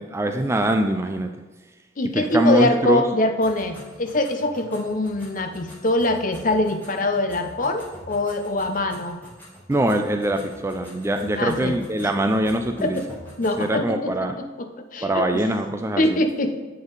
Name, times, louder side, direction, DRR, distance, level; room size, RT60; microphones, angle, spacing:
voice 1, 0.0-1.3 2.1-3.1 9.7-13.0 13.6-14.4 15.0-16.2, right 1 dB, 15° right, 6 dB, 0.3 m, -23 dB
voice 2, 2.0-9.2 11.3-11.8 12.0-12.1 12.8-13.1 13.4-15.4 16.0-16.6, left 2 dB, 45° left, 7 dB, 0.6 m, -24 dB
sound 1, 3.4-13.7, equal, 10° left, 2.1 m, -45 dB
8.0 x 5.3 x 3.9 m, 1.2 s
head